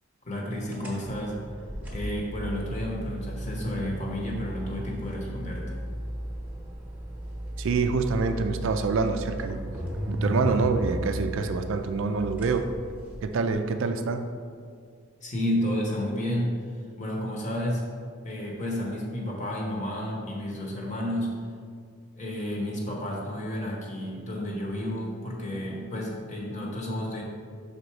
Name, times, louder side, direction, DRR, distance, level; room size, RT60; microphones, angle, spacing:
voice 1, 0.2-1.4 1.9-5.7 15.2-16.6 17.0-17.8 18.2-21.4 22.1-27.2, equal, 30° left, -2 dB, 1.0 m, -31 dB
sound 1, 0.7-13.5, equal, 10° right, 0.9 m, -35 dB
voice 2, 7.6-9.6 10.1-12.7 13.2-14.3, right 4 dB, 55° right, 7 dB, 0.3 m, -26 dB
5.7 x 4.0 x 4.6 m, 2.1 s
head